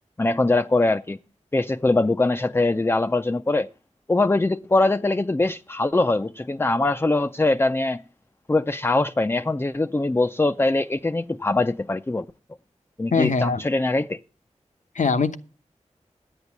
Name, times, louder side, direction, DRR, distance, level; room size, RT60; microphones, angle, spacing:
voice 1, 0.2-1.2 1.5-3.7 4.1-8.0 8.5-12.2 13.0-14.2, left 2 dB, 20° left, 0.5 m, -22 dB
voice 2, 13.1-13.6 14.9-15.4, left 5 dB, 80° left, 1.0 m, -21 dB
10.0 x 8.2 x 7.1 m
wide cardioid pair, 50°, 13 cm